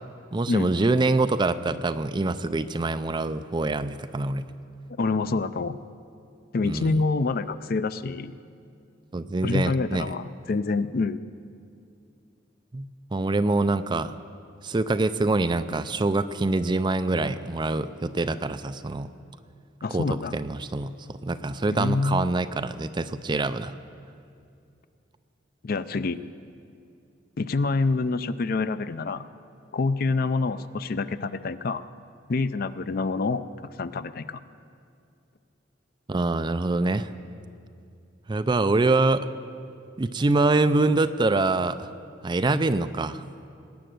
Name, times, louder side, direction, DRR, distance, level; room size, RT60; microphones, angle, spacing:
voice 1, 0.3-4.5 6.6-7.0 9.1-10.1 12.7-14.2 14.6-19.1 19.9-20.1 20.3-23.7 36.1-37.1 38.3-39.3 40.0-41.9 42.2-43.2, right 2 dB, 25° right, 11 dB, 0.4 m, -25 dB
voice 2, 4.9-5.8 6.5-8.4 9.4-11.2 19.8-20.3 21.7-22.3 25.6-26.2 27.4-29.3 29.7-31.8 32.3-33.4 33.8-34.4, left 3 dB, 50° left, 13 dB, 0.5 m, -26 dB
19.0 x 8.9 x 7.8 m, 2.5 s
head